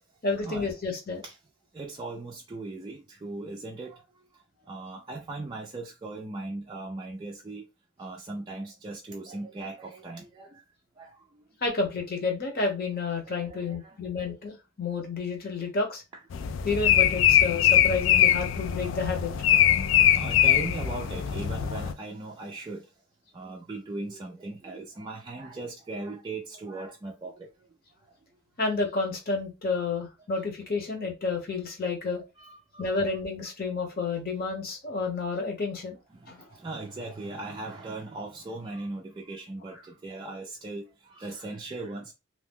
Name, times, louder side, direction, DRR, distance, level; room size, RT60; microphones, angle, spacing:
voice 1, 0.2-1.2 11.6-16.0 16.6-19.3 28.6-32.2 32.7-36.0 36.3-36.4, left 4 dB, 50° left, 1.0 m, -30 dB
voice 2, 1.7-4.0 4.3-7.7 8.0-10.6 11.0-11.4 13.3-14.0 18.7-18.8 19.5-22.9 23.3-27.5 28.0-28.2 32.4-32.6 32.9-33.0 36.1-42.1, right 2 dB, 20° right, 0.4 m, -39 dB
sound 1, 16.3-21.9, left 10 dB, 65° left, 0.3 m, -22 dB
2.7 x 2.1 x 3.6 m
head